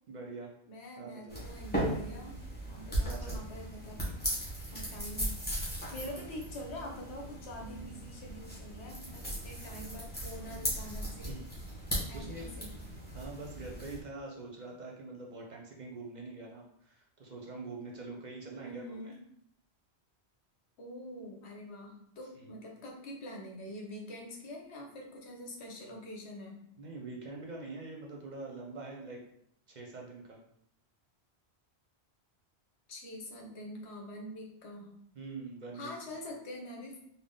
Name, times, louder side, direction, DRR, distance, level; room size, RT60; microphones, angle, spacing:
voice 1, 0.1-0.5 1.0-1.4 3.0-3.4 10.5-10.6 11.3-11.5 12.1-12.5 13.1-18.8 22.4-22.6 26.8-29.2 29.7-30.4 35.1-35.9, right 3 dB, 50° right, -1 dB, 0.6 m, -44 dB
voice 2, 0.7-2.4 2.7-4.2 4.7-5.3 5.9-11.4 12.1-12.8 18.6-19.2 20.8-26.6 32.9-34.9 35.7-37.0, left 1 dB, 80° left, 0 dB, 1.1 m, -45 dB
sound 1, 1.3-14.0, right 1 dB, 10° left, 1.0 m, -38 dB
3.5 x 2.1 x 3.8 m, 0.70 s
omnidirectional pair, 1.1 m